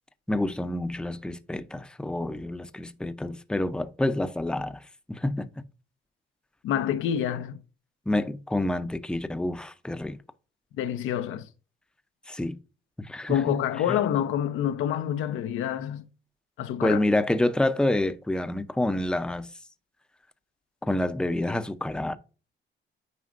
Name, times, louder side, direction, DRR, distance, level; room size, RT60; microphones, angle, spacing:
voice 1, 0.3-4.8 5.1-5.5 8.1-10.2 12.3-12.6 13.0-13.6 16.8-19.5 20.9-22.2, left 1 dB, 5° left, 0.6 m, -28 dB
voice 2, 6.6-7.6 10.8-11.5 13.3-16.0 16.6-17.0, left 10 dB, 90° left, 0.7 m, -27 dB
9.4 x 5.0 x 2.5 m
cardioid pair, 90°, 20 cm